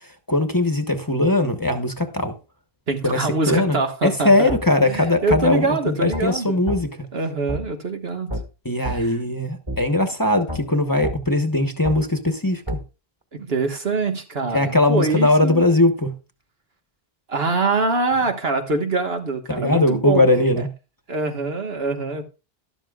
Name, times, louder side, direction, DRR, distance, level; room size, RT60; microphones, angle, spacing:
voice 1, 0.3-2.4 3.0-7.0 8.6-12.6 14.5-16.1 19.5-20.7, left 2 dB, 20° left, 1.0 m, -20 dB
voice 2, 2.9-4.5 4.8-6.7 7.1-8.3 8.8-9.2 13.3-15.6 17.3-20.2 21.1-22.2, right 3 dB, 75° right, 1.7 m, -24 dB
sound 1, 4.5-4.6 5.3-5.4 6.1-6.3 6.7-6.8 7.5-7.6 8.3-8.4 8.8-9.0 9.7-9.8 10.5-10.6 11.0-11.2 11.8-12.0 12.7-12.8, right 1 dB, 25° right, 1.8 m, -28 dB
12.5 x 12.0 x 2.4 m
omnidirectional pair, 1.0 m